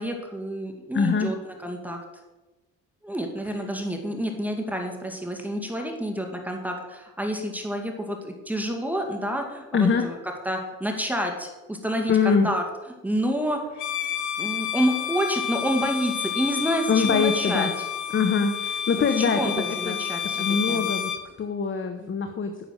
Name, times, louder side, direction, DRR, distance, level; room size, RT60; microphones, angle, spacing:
voice 1, 0.0-1.4 1.6-2.0 3.0-10.2 10.4-12.6 13.0-13.6 14.4-17.7 19.2-20.4 20.7-20.8, equal, 5° right, 3 dB, 2.1 m, -28 dB
voice 2, 0.9-1.3 9.7-10.1 12.1-12.5 16.9-17.7 18.1-20.0 20.4-21.1 21.4-22.5, left 5 dB, 40° left, 7 dB, 1.2 m, -23 dB
Bowed string instrument, 13.8-21.3, left 9 dB, 70° left, 1.2 m, -30 dB
10.0 x 6.9 x 9.2 m, 1.1 s
cardioid pair, 90°, 30 cm